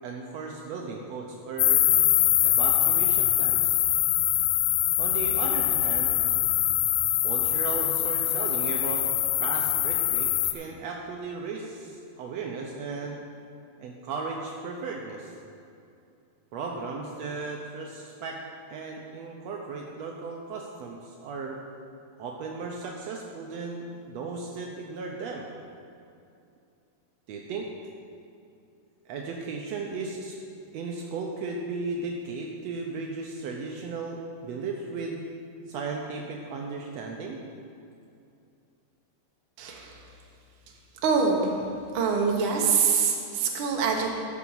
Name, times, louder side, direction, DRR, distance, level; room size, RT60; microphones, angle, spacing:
voice 1, 0.0-1.8 2.4-3.8 5.0-6.1 7.2-9.0 9.4-13.2 13.8-15.3 16.5-18.4 18.7-21.6 22.2-25.5 27.3-27.7 29.1-30.4 30.7-35.2 35.7-37.4, right 4 dB, 90° right, 0 dB, 1.5 m, -35 dB
sound 1, 1.6-10.5, left 13 dB, 85° left, 2.3 m, -23 dB
voice 2, 39.6-40.0 41.0-44.1, right 5 dB, 65° right, 0 dB, 1.3 m, -25 dB
13.0 x 6.1 x 5.7 m, 2.5 s
omnidirectional pair, 4.0 m